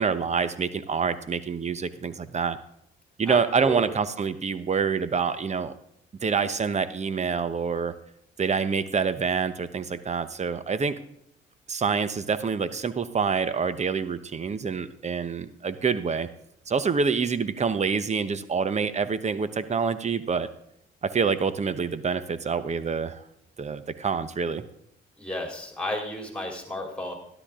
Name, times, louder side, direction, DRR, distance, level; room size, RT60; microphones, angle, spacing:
voice 1, 0.0-2.6 3.2-5.7 6.2-7.9 8.4-11.0 11.7-16.3 16.7-20.5 21.0-23.2 23.6-24.6, right 5 dB, 35° right, 13 dB, 1.0 m, -26 dB
voice 2, 3.3-3.9 25.2-27.1, left 1 dB, 5° left, 2 dB, 4.0 m, -33 dB
12.5 x 12.0 x 3.7 m, 0.74 s
cardioid pair, 90°, 20 cm